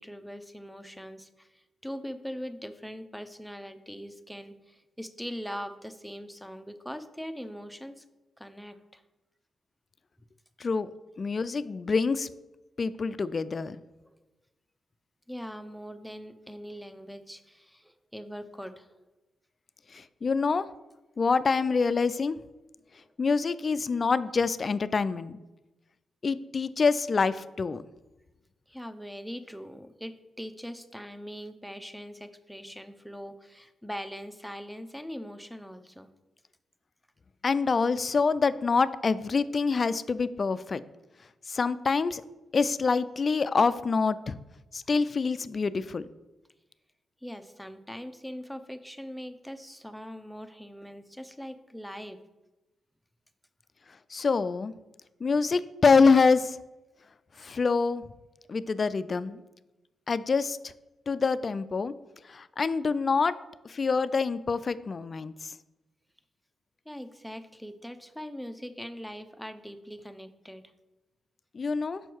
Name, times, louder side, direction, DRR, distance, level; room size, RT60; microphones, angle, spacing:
voice 1, 0.0-8.0 8.4-9.0 14.0-14.2 15.3-18.9 28.7-36.1 47.2-52.2 66.9-70.7, equal, ahead, 10 dB, 0.7 m, -41 dB
voice 2, 11.2-12.3 12.8-13.8 20.2-20.7 21.2-22.4 23.2-25.4 26.2-27.8 37.4-40.8 41.5-42.2 42.5-44.3 44.7-46.1 54.1-54.7 55.2-56.6 57.4-58.0 58.5-59.4 60.1-60.6 61.1-61.9 62.3-63.3 63.7-65.5 71.5-72.0, left 4 dB, 50° left, 15 dB, 0.3 m, -26 dB
6.1 x 4.5 x 4.6 m, 1.1 s
supercardioid pair, 50°, 0 cm